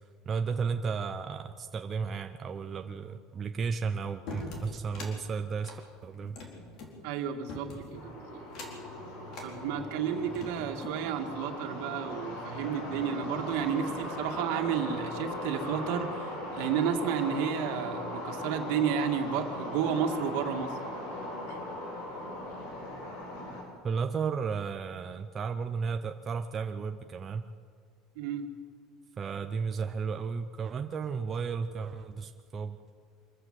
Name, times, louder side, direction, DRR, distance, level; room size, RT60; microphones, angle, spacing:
voice 1, 0.3-6.4 23.8-27.4 29.2-32.8, right 5 dB, 20° right, 6 dB, 0.6 m, -34 dB
sound 1, 4.3-5.1 5.6-6.9 7.5-8.0 8.5-8.9 9.3-9.5 10.1-11.0, left 2 dB, 40° left, 4.1 m, -43 dB
voice 2, 7.0-8.4 9.4-20.8 21.5-21.6 28.2-28.5, right 8 dB, 65° right, 4 dB, 2.2 m, -32 dB
sound 2, 7.9-23.6, left 1 dB, 80° left, 7.5 m, -39 dB
25.0 x 14.5 x 7.6 m, 2.1 s
cardioid pair, 175°, 0 cm